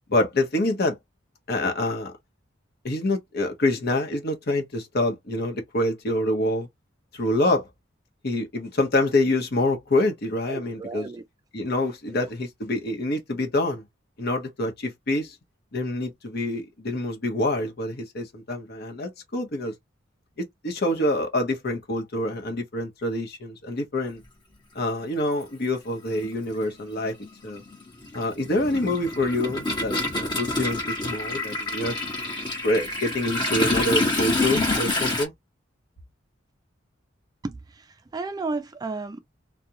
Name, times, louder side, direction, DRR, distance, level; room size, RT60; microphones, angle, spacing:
voice 1, 0.1-1.0 1.5-2.1 2.8-6.7 7.1-7.7 8.2-11.1 11.5-13.8 14.2-15.4 15.7-19.7 20.4-24.2 24.7-27.2 27.4-27.6 28.1-32.0 32.6-35.3, left 1 dB, 55° left, 0.9 m, -26 dB
voice 2, 10.5-11.2 12.1-12.3 37.4-39.2, right 3 dB, 20° right, 0.3 m, -33 dB
Toilet flush, 24.8-24.9 26.1-26.3 26.6-35.2, left 2 dB, 25° left, 1.0 m, -27 dB
2.4 x 2.2 x 2.8 m
head